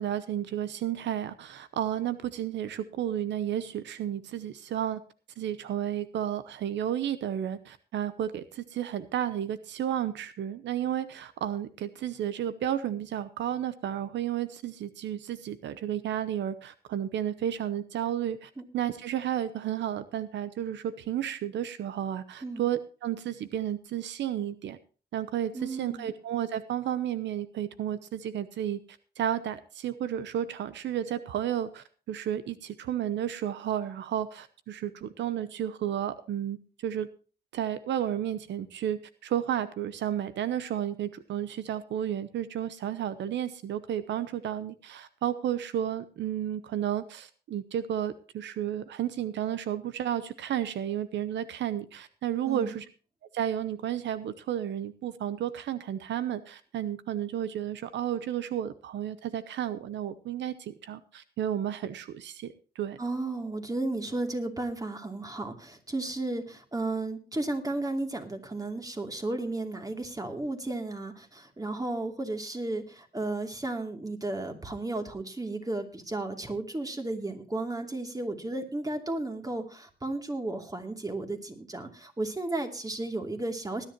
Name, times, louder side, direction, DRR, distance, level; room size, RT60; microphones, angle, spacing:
voice 1, 0.0-5.0 5.4-24.8 25.1-28.8 29.2-36.6 36.8-37.1 37.5-52.8 53.3-63.0, right 10 dB, 90° right, 14 dB, 0.8 m, -32 dB
voice 2, 25.5-26.1 52.4-52.8 63.0-83.9, right 2 dB, 20° right, 4 dB, 2.8 m, -34 dB
19.5 x 10.5 x 3.0 m, 0.36 s
cardioid pair, 75°, 18 cm